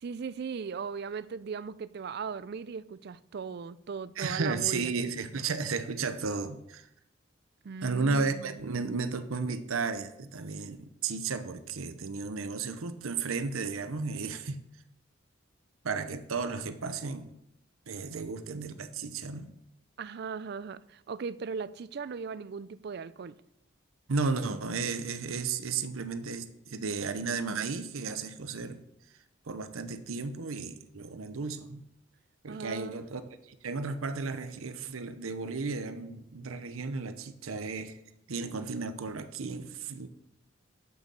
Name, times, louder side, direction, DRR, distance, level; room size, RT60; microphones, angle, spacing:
voice 1, 0.0-4.9 7.6-8.7 20.0-23.4 32.5-33.0, right 5 dB, 50° right, 0.4 m, -38 dB
voice 2, 4.2-6.9 7.8-14.6 15.8-17.3 17.9-19.5 24.1-28.8 29.5-31.8 32.4-33.2 33.6-38.0 38.3-40.1, right 4 dB, 90° right, 0.8 m, -33 dB
7.0 x 6.3 x 6.8 m
head